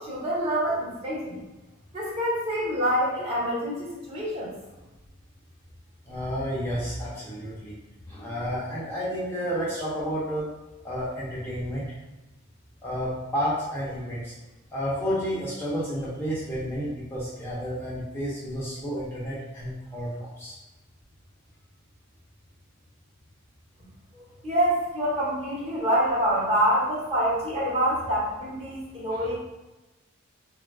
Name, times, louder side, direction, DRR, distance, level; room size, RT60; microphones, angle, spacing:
voice 1, 0.0-1.4 1.9-4.5 24.4-29.4, equal, 30° right, -6 dB, 0.8 m, -26 dB
voice 2, 6.1-7.7 8.1-10.5 10.8-11.9 12.8-14.3 14.7-20.6 24.1-24.2 29.1-29.3, equal, 10° left, -8 dB, 0.5 m, -31 dB
3.3 x 2.3 x 2.2 m, 1.1 s
head